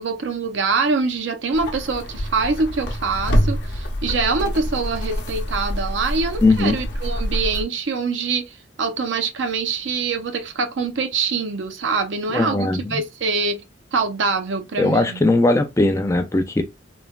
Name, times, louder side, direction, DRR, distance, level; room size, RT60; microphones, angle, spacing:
voice 1, 0.0-13.6 13.9-15.2, right 4 dB, 75° right, 0.5 m, -24 dB
sound 1, 1.5-7.6, equal, 60° left, 0.7 m, -26 dB
voice 2, 6.4-6.8 12.3-12.8 14.8-16.6, left 2 dB, 15° left, 0.3 m, -18 dB
3.1 x 2.1 x 2.3 m
head